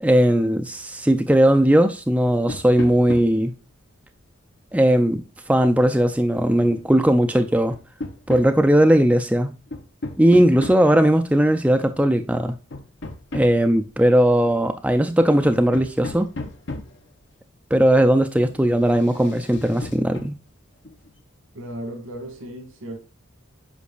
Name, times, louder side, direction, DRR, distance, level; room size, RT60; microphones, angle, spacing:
voice 1, 0.0-3.5 4.7-5.2 5.5-7.8 8.3-9.5 10.2-12.5 13.3-16.3 17.7-20.4, right 1 dB, 5° right, 0.4 m, -18 dB
sound 1, 2.2-3.5 5.1-5.2 6.8-7.1 7.7-8.5 9.1-9.2 9.7-11.0 11.4-11.6 12.2-13.7 14.5-14.7 15.1-15.2 15.4-17.1 18.2-18.6 18.9-20.4 20.8-21.1, left 2 dB, 60° left, 0.8 m, -35 dB
voice 2, 21.5-23.0, right 1 dB, 85° right, 2.1 m, -35 dB
8.3 x 5.2 x 2.4 m
head